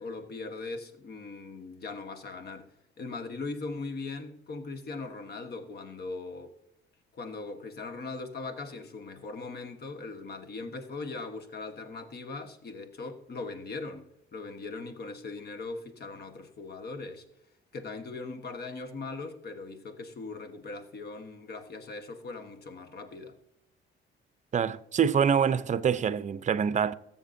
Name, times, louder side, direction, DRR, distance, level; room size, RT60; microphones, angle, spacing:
voice 1, 0.0-2.7 3.0-6.5 7.1-14.0 14.3-17.2 17.7-23.4, left 3 dB, 55° left, 1.2 m, -40 dB
voice 2, 24.5-26.9, right 7 dB, 35° right, 0.5 m, -25 dB
20.0 x 7.1 x 2.6 m
cardioid pair, 90°, 20 cm